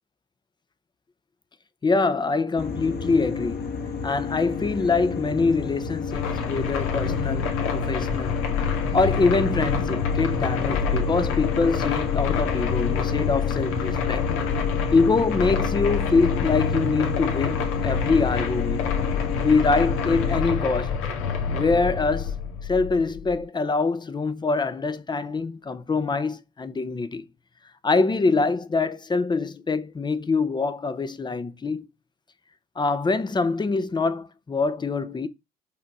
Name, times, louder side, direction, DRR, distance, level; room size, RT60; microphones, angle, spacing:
voice 1, 1.8-3.7 4.0-8.4 8.9-14.3 14.9-18.9 19.4-21.0 21.5-22.3 22.7-27.2 27.8-31.9 32.8-35.3, left 4 dB, 20° left, 0.7 m, -24 dB
sound 1, 2.6-20.4, left 5 dB, 50° left, 1.7 m, -31 dB
sound 2, 6.1-23.4, left 6 dB, 85° left, 2.0 m, -27 dB
5.6 x 3.8 x 5.9 m
cardioid pair, 115°, 21 cm